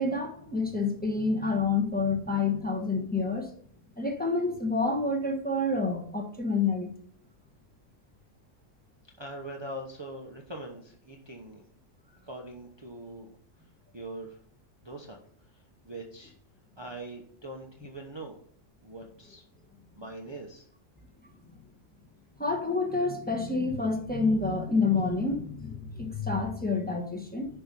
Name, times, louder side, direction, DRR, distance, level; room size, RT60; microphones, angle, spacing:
voice 1, 0.0-3.5 4.0-6.9 22.4-27.5, left 3 dB, 5° left, 2 dB, 1.3 m, -28 dB
voice 2, 9.2-11.6 12.2-13.3 13.9-14.3 14.8-15.2 15.8-16.3 16.8-18.3 18.8-19.4 20.0-20.6, right 1 dB, 25° right, 1 dB, 0.9 m, -42 dB
10.5 x 4.6 x 5.4 m, 0.62 s
omnidirectional pair, 1.3 m